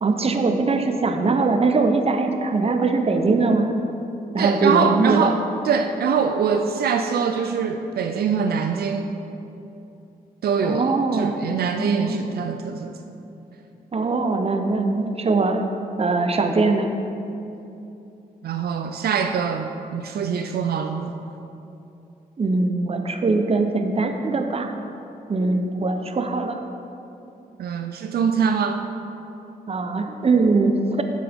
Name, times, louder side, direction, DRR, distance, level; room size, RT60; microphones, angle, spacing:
voice 1, 0.0-3.7 4.3-5.3 10.6-11.3 11.8-12.2 13.9-15.7 16.0-16.9 22.4-24.7 25.3-26.6 29.7-31.0, right 3 dB, 40° right, 6 dB, 0.8 m, -21 dB
voice 2, 4.4-5.4 5.6-9.2 10.4-13.0 18.4-21.1 27.6-28.9, right 6 dB, 80° right, 5 dB, 0.5 m, -23 dB
9.6 x 7.5 x 3.6 m, 2.8 s
cardioid pair, 65°, 16 cm